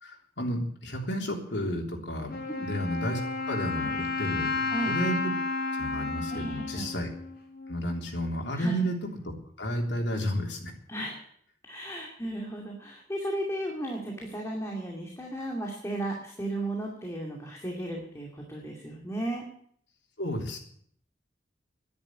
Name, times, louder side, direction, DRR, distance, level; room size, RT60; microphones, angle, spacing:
voice 1, 0.0-3.2 3.5-5.3 5.7-7.1 7.7-10.7 20.2-20.6, equal, 90° left, 1 dB, 3.3 m, -32 dB
Wind instrument woodwind instrument, 2.3-8.0, left 4 dB, 55° left, 2.9 m, -32 dB
voice 2, 6.3-6.9 8.6-8.8 10.9-11.3 11.6-19.5, right 1 dB, 15° left, -1 dB, 2.4 m, -35 dB
10.5 x 10.5 x 10.0 m, 0.64 s
head